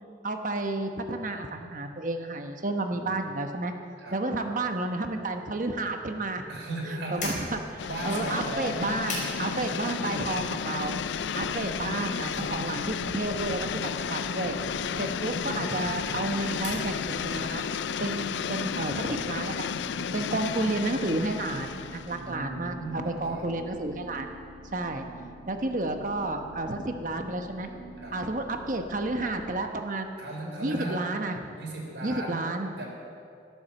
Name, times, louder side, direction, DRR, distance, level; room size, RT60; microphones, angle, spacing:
voice 1, 0.2-3.7 4.1-6.4 6.8-7.6 8.0-11.0 11.3-14.6 15.0-17.6 18.0-19.8 20.1-24.3 24.7-25.1 25.5-27.7 28.1-30.2 30.6-31.4 32.0-32.8, right 2 dB, 45° right, 5 dB, 1.0 m, -31 dB
voice 2, 6.5-7.4 7.8-9.0 11.9-12.5 14.9-15.1 20.0-20.4 22.1-23.5 28.0-28.2 30.2-31.1 31.6-32.9, right 1 dB, 90° right, -1 dB, 4.0 m, -37 dB
sound 1, 7.1-17.5, left 2 dB, 45° left, 4.6 m, -43 dB
sound 2, 7.8-22.3, left 7 dB, 85° left, 0.4 m, -32 dB
sound 3, 14.5-29.5, right 1 dB, 65° right, 2.5 m, -46 dB
13.0 x 12.0 x 7.0 m, 2.4 s
head